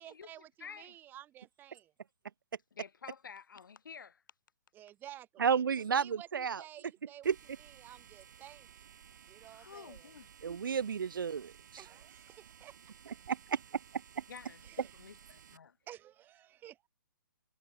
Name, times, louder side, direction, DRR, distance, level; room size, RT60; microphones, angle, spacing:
voice 1, 0.0-1.9 4.7-7.3 7.6-8.7 9.3-10.1 11.8-12.8 14.6-14.9 15.9-16.9, right 12 dB, 20° right, 1.8 m, -53 dB
voice 2, 0.6-0.9 2.7-4.2 9.5-10.3 14.3-15.8, left 6 dB, 75° left, 3.3 m, -50 dB
voice 3, 5.4-6.6 7.3-7.4 10.4-11.5 13.3-13.4, right 7 dB, 85° right, 0.4 m, -31 dB
sound 1, 7.2-15.6, right 8 dB, 60° right, 3.3 m, -57 dB
hypercardioid pair, 140°, 11 cm